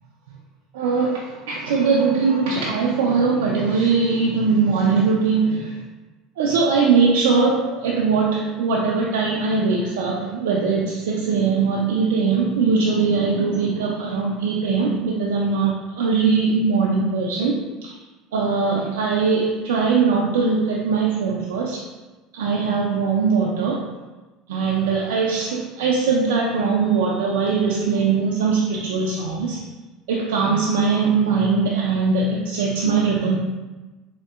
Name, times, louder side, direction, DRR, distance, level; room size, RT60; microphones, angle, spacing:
voice 1, 0.7-5.8 6.4-18.0 18.3-21.8 22.3-23.8 24.5-29.6 30.1-33.4, right 4 dB, 85° right, -3 dB, 0.3 m, -21 dB
3.6 x 2.0 x 2.3 m, 1.2 s
hypercardioid pair, 80°, 0 cm